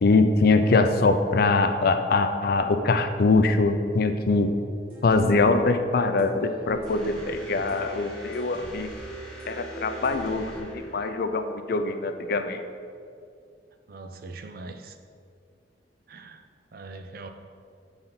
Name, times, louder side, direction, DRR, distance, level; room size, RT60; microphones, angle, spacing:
voice 1, 0.0-4.5 5.0-8.9 9.5-12.6, left 3 dB, 55° left, 8 dB, 0.4 m, -23 dB
sound 1, 4.9-10.6, right 2 dB, 30° right, 1.5 m, -41 dB
sound 2, 6.9-11.6, equal, 5° left, 1.1 m, -44 dB
voice 2, 13.9-15.0 16.1-17.3, right 3 dB, 55° right, 7 dB, 0.5 m, -42 dB
7.1 x 4.0 x 5.7 m, 2.3 s
head